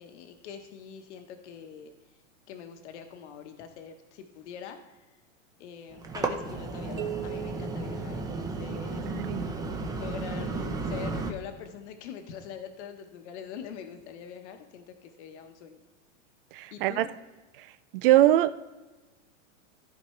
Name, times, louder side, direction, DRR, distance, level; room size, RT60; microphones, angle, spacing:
voice 1, 0.0-1.9 2.5-4.8 5.1-5.2 5.6-9.0 9.9-15.8 16.7-17.1, left 8 dB, 60° left, 6 dB, 1.2 m, -43 dB
sound 1, 5.9-11.3, right 3 dB, 10° right, 0.8 m, -33 dB
sound 2, 7.0-8.9, right 11 dB, 75° right, 1.0 m, -39 dB
voice 2, 9.1-9.4 16.5-17.1 17.6-17.7 17.9-18.6, right 14 dB, 45° right, 14 dB, 0.5 m, -23 dB
14.5 x 5.0 x 3.2 m, 1.2 s
supercardioid pair, 140°, 38 cm